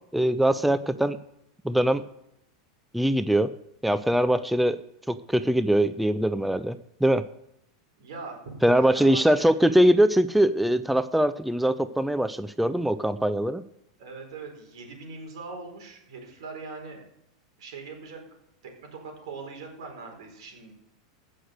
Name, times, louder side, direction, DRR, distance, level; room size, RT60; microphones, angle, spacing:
voice 1, 0.1-1.2 1.6-2.0 2.9-3.5 3.8-4.8 5.1-7.2 8.6-13.6, right 1 dB, ahead, 13 dB, 0.4 m, -22 dB
voice 2, 8.0-8.4 8.8-9.5 14.0-17.1 17.6-18.2 18.6-20.7, right 4 dB, 80° right, 3 dB, 4.5 m, -41 dB
16.0 x 6.5 x 6.5 m, 0.81 s
supercardioid pair, 145°, 3 cm